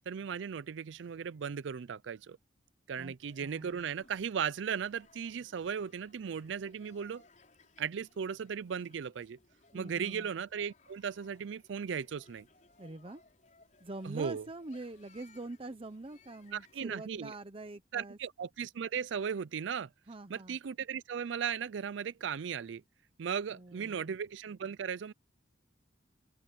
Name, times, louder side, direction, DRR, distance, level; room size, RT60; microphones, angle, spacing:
voice 1, 0.1-2.4 2.9-7.2 7.8-9.4 9.7-12.5 14.0-14.5 16.5-17.3 17.9-19.9 20.3-22.8 23.2-25.1, right 7 dB, 80° right, 0.4 m, -37 dB
sound 1, 3.2-16.8, left 3 dB, 45° left, 4.8 m, -64 dB
voice 2, 3.4-3.8 9.7-10.3 12.8-13.2 13.8-18.2 20.1-20.6 23.5-24.2, right 2 dB, 30° right, 0.8 m, -45 dB
open air
head